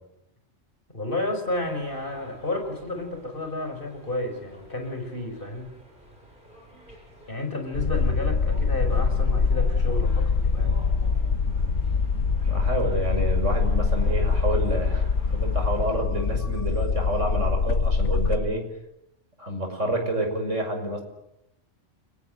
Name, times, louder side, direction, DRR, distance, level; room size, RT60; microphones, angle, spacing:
voice 1, 0.9-5.7 7.3-10.8, left 2 dB, 45° left, 5 dB, 5.7 m, -31 dB
sound 1, 1.4-15.9, equal, 40° right, 8.4 m, -50 dB
sound 2, 7.7-18.4, left 4 dB, 70° left, 1.5 m, -24 dB
voice 2, 12.4-18.6 19.4-21.0, right 1 dB, 75° right, 4 dB, 6.2 m, -28 dB
29.5 x 22.0 x 8.0 m, 0.83 s
omnidirectional pair, 1.3 m